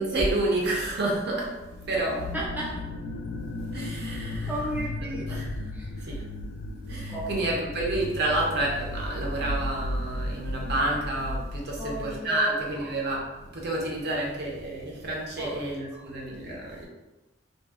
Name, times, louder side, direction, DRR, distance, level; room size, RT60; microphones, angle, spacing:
voice 1, 0.0-1.6 1.9-2.3 3.7-4.5 5.1-5.5 6.0-6.2 6.9-16.9, right 2 dB, 55° right, -2 dB, 0.6 m, -29 dB
sound 1, 1.6-12.2, left 1 dB, 80° left, 0.3 m, -35 dB
voice 2, 2.3-2.8 4.5-5.5 5.7-6.1 7.1-7.5 11.8-12.9 15.4-15.7 15.9-16.1, right 1 dB, 10° right, -6 dB, 0.3 m, -34 dB
2.6 x 2.0 x 2.3 m, 1.1 s
head